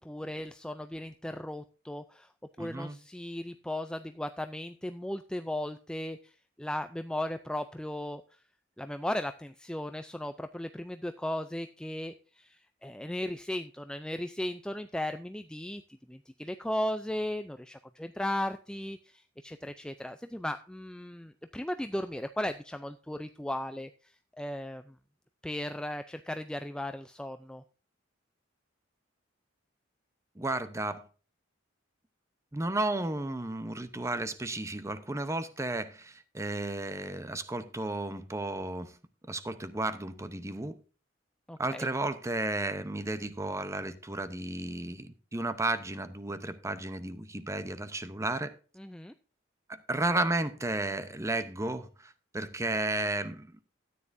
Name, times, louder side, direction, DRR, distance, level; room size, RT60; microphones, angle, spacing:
voice 1, 0.0-2.3 2.6-8.2 8.8-15.8 16.1-24.9 25.4-27.6 41.5-41.9 48.8-49.1, left 1 dB, 5° left, 0.4 m, -36 dB
voice 2, 2.6-3.0 30.4-31.0 32.5-39.0 39.3-40.8 41.6-48.5 49.7-53.5, right 2 dB, 15° right, 0.8 m, -33 dB
13.5 x 9.5 x 2.6 m
head